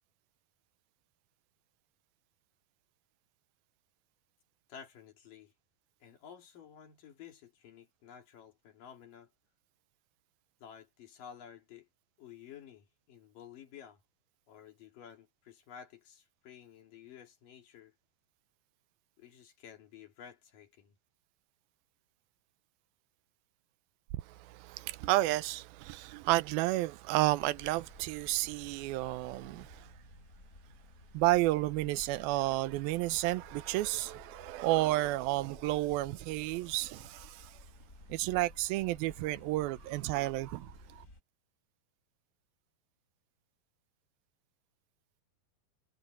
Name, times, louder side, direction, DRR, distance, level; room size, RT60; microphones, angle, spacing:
voice 1, 4.7-5.5 6.0-9.3 10.6-11.9 12.2-14.0 14.5-17.9 19.2-21.0, left 8 dB, 65° left, 4.2 m, -53 dB
voice 2, 24.2-29.9 31.1-37.6 38.1-41.1, right 17 dB, 85° right, 2.5 m, -31 dB
sound 1, 27.3-41.2, left 2 dB, 20° left, 6.1 m, -55 dB
omnidirectional pair, 4.2 m